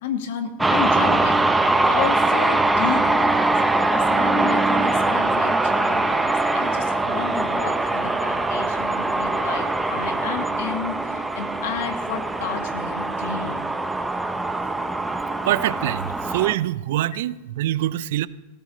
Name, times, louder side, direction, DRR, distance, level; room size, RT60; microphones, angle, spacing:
voice 1, 0.0-1.5 1.8-3.6 3.9-13.6, left 7 dB, 65° left, 6 dB, 1.6 m, -32 dB
sound 1, 0.6-16.5, right 2 dB, 5° right, 0.7 m, -22 dB
voice 2, 15.4-18.3, right 14 dB, 65° right, 18 dB, 0.5 m, -24 dB
18.5 x 14.0 x 3.1 m, 1.1 s
hypercardioid pair, 125°, 0 cm